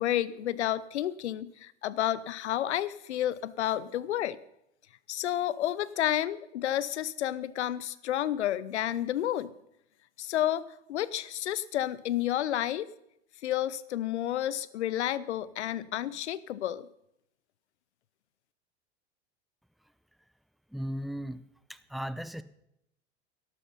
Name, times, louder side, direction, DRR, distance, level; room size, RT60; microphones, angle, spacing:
voice 1, 0.0-4.4 5.1-9.5 10.2-12.9 13.4-16.9, left 12 dB, 90° left, 19 dB, 0.8 m, -30 dB
voice 2, 20.7-21.4 21.7-22.4, equal, ahead, 14 dB, 0.7 m, -36 dB
12.5 x 12.0 x 5.6 m, 0.78 s
hypercardioid pair, 95°, 33 cm